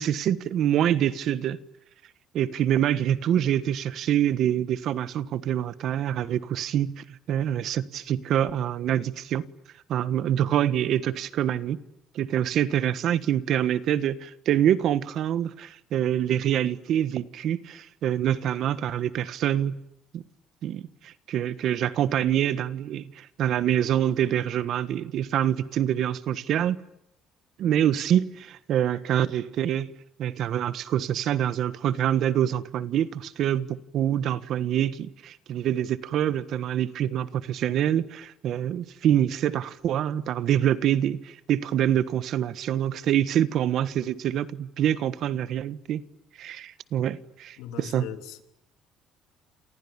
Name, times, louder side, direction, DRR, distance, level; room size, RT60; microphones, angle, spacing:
voice 1, 0.0-1.6 2.3-9.5 9.9-11.8 12.1-19.8 20.1-20.2 20.6-26.8 27.6-29.9 30.2-46.0 46.4-48.1, right 10 dB, 50° right, 1.4 m, -26 dB
voice 2, 47.6-48.4, left 9 dB, 80° left, 3.3 m, -39 dB
29.5 x 28.0 x 7.2 m
cardioid pair, 165°, 0 cm